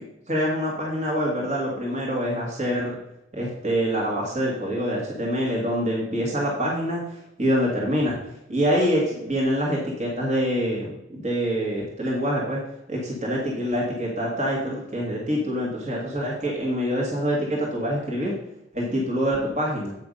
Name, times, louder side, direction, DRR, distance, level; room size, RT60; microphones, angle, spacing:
voice 1, 0.3-3.0 3.3-8.2 8.5-12.6 12.9-18.3 18.7-19.9, equal, 40° right, -4 dB, 1.9 m, -25 dB
8.7 x 5.9 x 5.3 m, 0.86 s
head